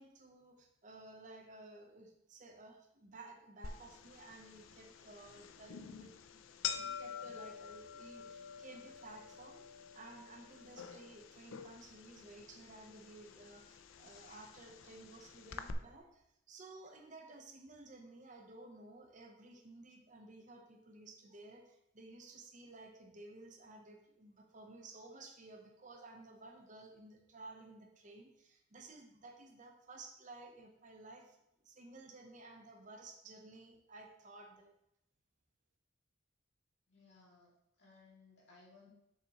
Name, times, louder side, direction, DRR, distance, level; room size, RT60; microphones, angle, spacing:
voice 1, 0.0-31.4 31.6-34.7, right 2 dB, 40° right, 3 dB, 0.8 m, -55 dB
sound 1, 3.6-15.7, left 7 dB, 85° left, 0.5 m, -48 dB
voice 2, 36.9-38.9, left 3 dB, 60° left, -5 dB, 2.4 m, -62 dB
6.8 x 6.0 x 3.0 m, 0.82 s
head